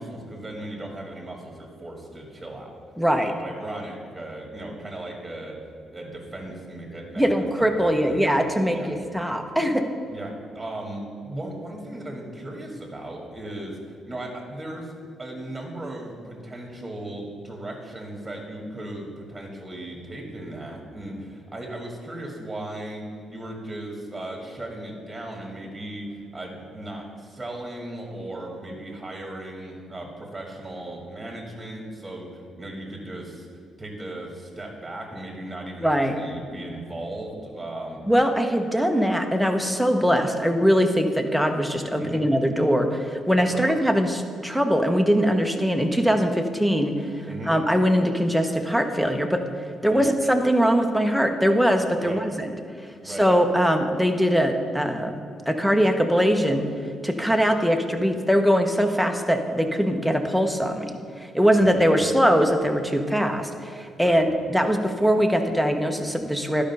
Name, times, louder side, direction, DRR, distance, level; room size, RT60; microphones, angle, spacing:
voice 1, 0.0-2.7 3.2-5.6 5.9-8.2 8.7-8.9 10.1-14.9 15.2-23.0 23.3-33.5 33.8-38.0 42.0-42.2 43.5-43.7 47.3-47.5 49.9-50.1 52.0-52.2 53.0-53.3 61.5-61.9 64.0-64.2, right 1 dB, 15° right, 0 dB, 1.8 m, -37 dB
voice 2, 3.0-3.3 7.2-9.8 35.8-36.1 38.1-49.4 49.8-52.5 53.0-55.1 55.5-56.7 57.0-66.6, equal, ahead, 5 dB, 0.9 m, -22 dB
11.5 x 5.2 x 5.5 m, 2.4 s
cardioid pair, 90°, 0 cm